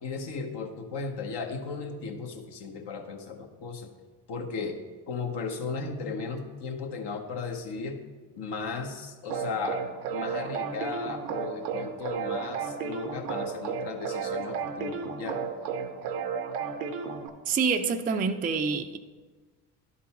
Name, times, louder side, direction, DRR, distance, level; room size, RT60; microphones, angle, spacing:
voice 1, 0.0-3.9 4.3-4.8 5.1-8.0 8.4-9.8 10.1-15.4, left 4 dB, 60° left, 1.1 m, -35 dB
sound 1, 9.3-17.3, right 6 dB, 85° right, 0.7 m, -33 dB
voice 2, 17.5-19.0, right 5 dB, 20° right, 0.4 m, -27 dB
11.0 x 4.1 x 4.2 m
hypercardioid pair, 55°, 46 cm